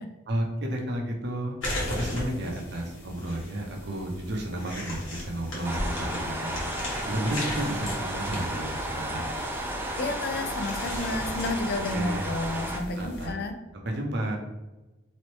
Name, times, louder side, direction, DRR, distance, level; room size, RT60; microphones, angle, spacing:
voice 1, 0.3-9.3 11.9-12.4 13.0-13.4 13.7-14.4, right 1 dB, 60° right, 1 dB, 0.7 m, -32 dB
sound 1, 1.6-13.3, left 1 dB, 85° left, 1.4 m, -37 dB
sound 2, 5.6-12.8, right 1 dB, 10° right, 0.4 m, -33 dB
voice 2, 10.0-13.5, left 2 dB, 55° left, 6 dB, 0.5 m, -31 dB
4.0 x 3.2 x 3.1 m, 1.1 s
head